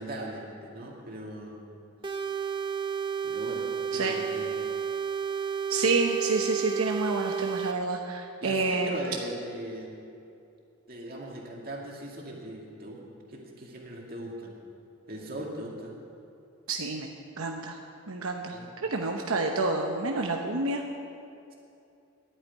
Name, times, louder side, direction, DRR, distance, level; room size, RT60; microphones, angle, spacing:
voice 1, 0.0-1.6 3.2-4.6 8.4-9.9 10.9-13.0 13.3-14.6 15.1-15.9 18.5-18.7, right 1 dB, 45° right, -2 dB, 2.2 m, -39 dB
sound 1, 2.0-7.8, right 7 dB, 20° right, 0.6 m, -31 dB
voice 2, 5.7-8.9 16.7-17.8 18.1-18.6 18.8-20.8, right 3 dB, 80° right, 2 dB, 0.9 m, -28 dB
11.5 x 9.0 x 9.3 m, 2.7 s
head